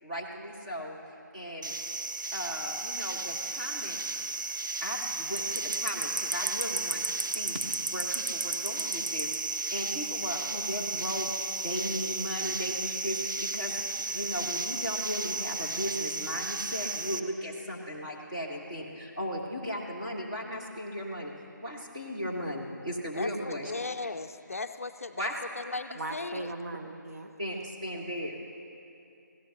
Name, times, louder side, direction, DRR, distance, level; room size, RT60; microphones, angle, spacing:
voice 1, 0.0-1.0 1.3-1.7 2.3-4.0 4.8-7.0 7.3-13.8 14.1-21.3 21.6-23.7 25.2-25.3 27.4-28.4, equal, 20° right, -4 dB, 1.7 m, -36 dB
sound 1, 1.6-17.2, right 3 dB, 80° right, 0.8 m, -33 dB
voice 2, 23.1-25.3 25.6-26.5, left 3 dB, 45° left, 8 dB, 0.5 m, -37 dB
voice 3, 25.9-27.3, right 2 dB, 50° right, 4 dB, 1.0 m, -38 dB
26.5 x 17.0 x 3.0 m, 2.7 s
figure-of-eight pair, 175°, 10 cm